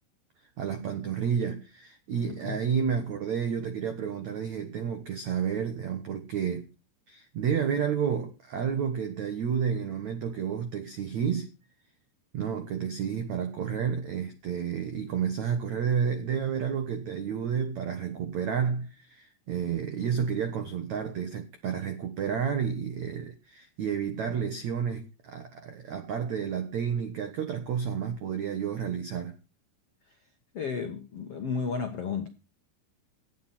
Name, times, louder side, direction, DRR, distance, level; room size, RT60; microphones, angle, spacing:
voice 1, 0.6-6.7 7.1-11.5 12.3-29.4, right 7 dB, 80° right, 1.6 m, -30 dB
voice 2, 2.2-2.6 30.1-30.2 30.5-32.3, left 5 dB, 80° left, 1.3 m, -33 dB
17.5 x 11.5 x 4.4 m
omnidirectional pair, 5.4 m